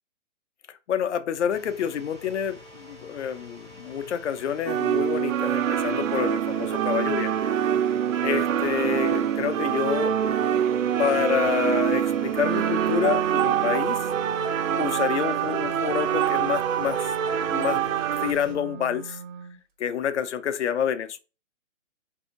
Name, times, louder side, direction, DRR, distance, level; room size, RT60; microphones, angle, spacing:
voice 1, 0.7-7.3 8.2-10.1 11.0-14.1 14.8-17.1 17.5-17.8 18.2-19.2 19.8-21.2, left 8 dB, 65° left, 0.5 m, -28 dB
sound 1, 1.5-18.5, left 1 dB, 5° right, 0.4 m, -46 dB
sound 2, 4.7-18.3, right 9 dB, 90° right, 0.5 m, -25 dB
Wind instrument woodwind instrument, 12.4-19.6, right 7 dB, 40° right, 0.9 m, -38 dB
3.5 x 2.7 x 3.7 m
hypercardioid pair, 155°, 38 cm